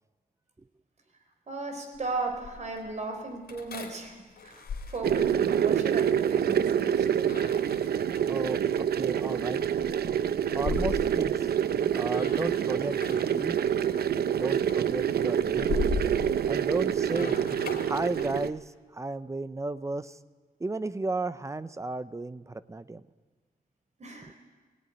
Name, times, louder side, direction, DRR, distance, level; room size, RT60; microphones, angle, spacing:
voice 1, 1.5-7.3 24.0-24.3, right 3 dB, 45° right, 4 dB, 4.3 m, -36 dB
sound 1, 1.9-2.9 3.5-5.7 7.2-8.5 9.2-11.8 12.1-13.6 13.9-14.3 14.7-18.6, left 4 dB, 80° left, 3.3 m, -38 dB
sound 2, 5.0-18.5, right 9 dB, 80° right, 0.7 m, -27 dB
voice 2, 8.3-8.6 8.9-10.0 10.5-11.4 11.9-13.6 14.4-15.9 16.5-17.4 17.8-18.6 18.9-20.2 20.6-23.0, right 2 dB, 20° right, 15 dB, 0.7 m, -34 dB
19.5 x 18.0 x 9.9 m, 1.4 s
wide cardioid pair, 140°, 16 cm